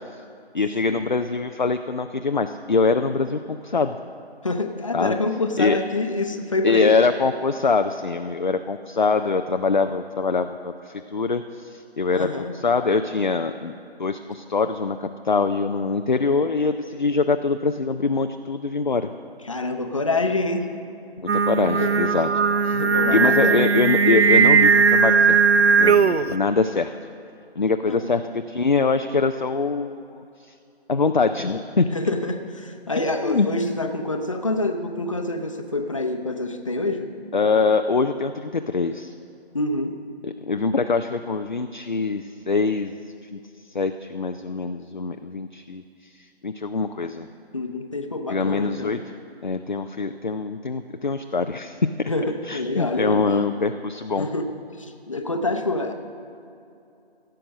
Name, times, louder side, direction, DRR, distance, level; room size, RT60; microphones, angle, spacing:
voice 1, 0.5-4.0 4.9-5.2 5.6-5.8 6.6-13.7 14.0-19.1 21.2-22.3 22.6-22.8 23.1-25.4 25.8-26.9 27.6-30.5 30.9-31.9 33.2-33.5 37.3-39.1 40.2-42.9 43.3-46.1 46.4-47.3 48.3-49.0 49.4-51.8 52.5-54.3, left 4 dB, 50° left, 7 dB, 0.4 m, -23 dB
voice 2, 4.4-7.0 12.1-12.5 19.1-19.2 19.4-20.7 21.8-21.9 22.7-23.6 27.9-28.1 31.9-37.1 39.5-40.0 47.5-48.9 52.1-53.2 54.2-54.5 54.8-55.9, left 2 dB, 30° left, 5 dB, 0.8 m, -26 dB
Singing, 21.3-26.3, right 5 dB, 80° right, 0.6 m, -18 dB
16.0 x 7.7 x 6.4 m, 2.7 s
figure-of-eight pair, 165°, 32 cm